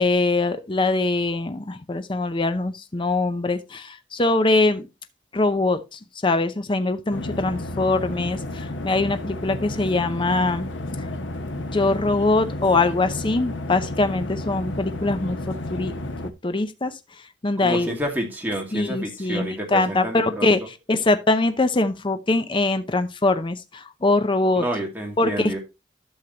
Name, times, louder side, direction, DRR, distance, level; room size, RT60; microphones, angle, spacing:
voice 1, 0.0-4.9 5.3-10.7 11.6-15.4 15.7-15.9 16.2-16.9 17.4-17.9 18.7-20.6 20.9-24.6 25.2-25.6, left 2 dB, 25° left, 0.6 m, -22 dB
sound 1, 7.1-16.3, left 1 dB, 80° left, 1.0 m, -32 dB
voice 2, 17.6-20.5 24.6-25.6, right 1 dB, 10° right, 2.4 m, -29 dB
11.5 x 6.6 x 2.8 m
head